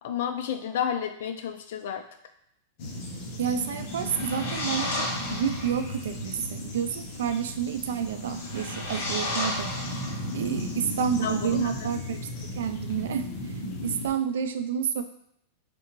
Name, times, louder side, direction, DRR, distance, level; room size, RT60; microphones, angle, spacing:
voice 1, 0.0-2.0 11.2-12.0, left 8 dB, 65° left, 7 dB, 0.4 m, -31 dB
sound 1, 2.8-14.1, left 1 dB, 40° left, 0.8 m, -36 dB
voice 2, 3.4-10.0 10.3-12.2 12.5-13.3 13.8-15.0, right 8 dB, 85° right, 9 dB, 0.4 m, -29 dB
sound 2, 3.8-5.9 8.2-10.6, left 2 dB, 80° left, 1.3 m, -33 dB
3.8 x 3.4 x 2.9 m, 0.76 s
supercardioid pair, 170°, 0 cm